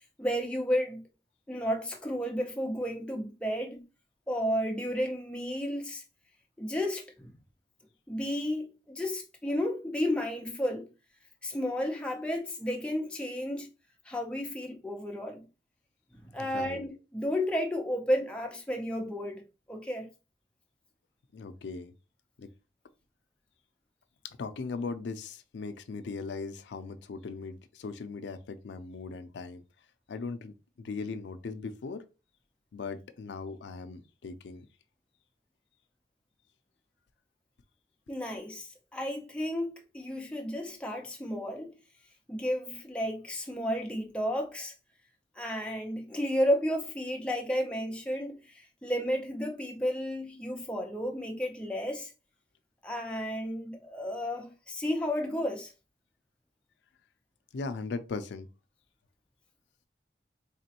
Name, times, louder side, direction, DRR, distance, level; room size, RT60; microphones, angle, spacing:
voice 1, 0.2-1.0 1.5-3.8 4.3-6.0 6.6-7.4 8.1-10.9 11.4-13.7 14.1-15.5 16.1-19.4 19.7-20.1 38.1-41.7 42.3-44.7 45.4-52.1 52.8-55.7, equal, 5° left, 0.6 m, -32 dB
voice 2, 16.4-16.9 21.3-21.9 22.4-22.5 24.2-29.6 30.1-32.0 32.7-34.6 57.5-58.5, left 4 dB, 85° left, 0.4 m, -39 dB
4.0 x 3.0 x 2.9 m
head